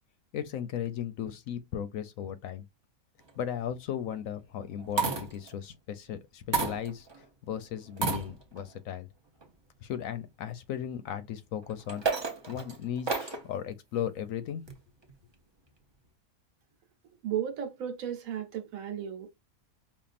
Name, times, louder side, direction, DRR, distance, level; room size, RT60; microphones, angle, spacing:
voice 1, 0.3-2.6 3.4-7.1 7.5-9.1 9.8-12.0 12.5-14.6, left 9 dB, 75° left, 1.0 m, -36 dB
sound 1, 3.3-3.6 4.7-5.5 6.5-7.2 7.9-8.7 9.4-9.5 11.6-13.5 14.7-15.2, right 4 dB, 25° right, 0.6 m, -32 dB
voice 2, 17.2-19.4, right 9 dB, 70° right, 1.3 m, -34 dB
5.3 x 2.5 x 2.5 m
omnidirectional pair, 1.5 m